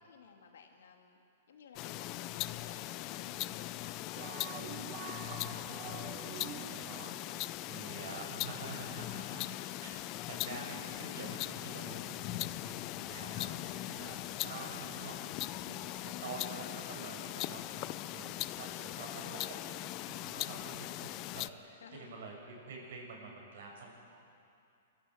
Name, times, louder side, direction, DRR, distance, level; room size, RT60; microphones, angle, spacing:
voice 1, 0.0-4.2 9.3-9.7 20.3-21.4 21.8-22.3, left 6 dB, 85° left, 4 dB, 2.3 m, -57 dB
sound 1, 1.8-21.5, left 16 dB, 30° left, 0.4 m, -40 dB
sound 2, 4.2-7.1, right 11 dB, 30° right, 0.9 m, -47 dB
voice 2, 5.3-15.2 15.6-19.8 20.0-23.9, right 4 dB, 65° right, -1 dB, 6.4 m, -48 dB
25.5 x 14.5 x 7.9 m, 2.5 s
hypercardioid pair, 160°, 0 cm